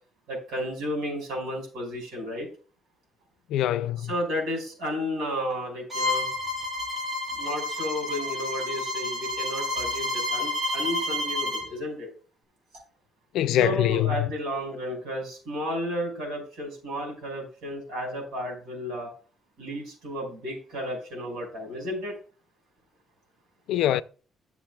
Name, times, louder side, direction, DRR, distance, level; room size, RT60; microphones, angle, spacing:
voice 1, 0.3-2.5 4.0-6.3 7.4-12.1 13.5-19.1 19.6-22.2, equal, 75° right, 5.3 m, -32 dB
voice 2, 3.5-4.1 13.3-14.3 23.7-24.0, left 13 dB, 85° left, 0.4 m, -23 dB
Bowed string instrument, 5.9-11.7, left 1 dB, 20° right, 1.7 m, -30 dB
14.5 x 7.0 x 2.3 m
cardioid pair, 160°, 0 cm